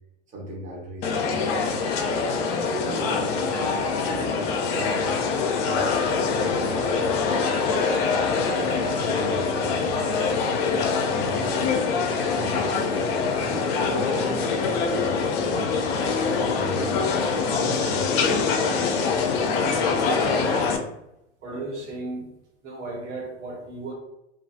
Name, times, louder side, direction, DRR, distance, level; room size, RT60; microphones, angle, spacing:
voice 1, 0.3-1.9 2.5-3.8 4.0-5.2 5.6-7.5 8.4-11.8 12.2-16.0 16.6-18.6, right 1 dB, 20° right, -2 dB, 0.7 m, -37 dB
sound 1, 1.0-20.8, left 5 dB, 55° left, 0.5 m, -24 dB
voice 2, 20.1-20.8 21.4-22.2 22.6-23.9, right 2 dB, 70° right, -3 dB, 1.2 m, -33 dB
2.4 x 2.3 x 2.5 m, 0.86 s
hypercardioid pair, 90°, 37 cm